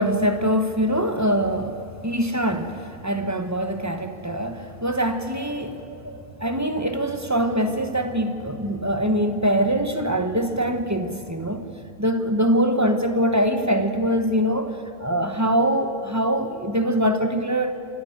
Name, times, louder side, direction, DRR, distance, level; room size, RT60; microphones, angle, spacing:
voice 1, 0.0-11.7 12.0-17.7, equal, 15° right, 7 dB, 0.9 m, -23 dB
25.5 x 11.5 x 9.3 m, 2.4 s
omnidirectional pair, 1.6 m